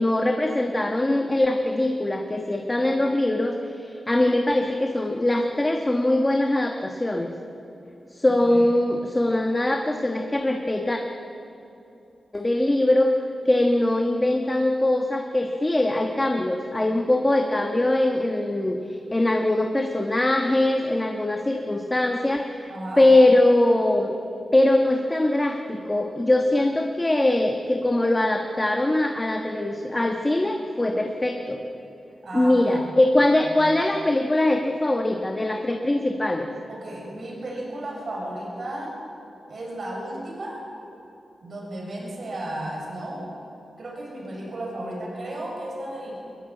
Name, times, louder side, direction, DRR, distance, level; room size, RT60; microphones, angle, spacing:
voice 1, 0.0-7.3 8.1-11.0 12.3-13.1 13.4-18.8 19.1-22.7 23.0-24.1 24.5-31.6 32.3-36.5, left 1 dB, 15° left, 3 dB, 1.3 m, -22 dB
voice 2, 8.2-8.7 22.7-23.1 32.2-32.9 33.4-33.6 36.7-39.0 39.5-40.6 41.4-43.3 43.8-46.2, right 1 dB, 45° right, -1 dB, 6.9 m, -34 dB
22.5 x 21.0 x 8.9 m, 2.9 s
wide cardioid pair, 160°, 0 cm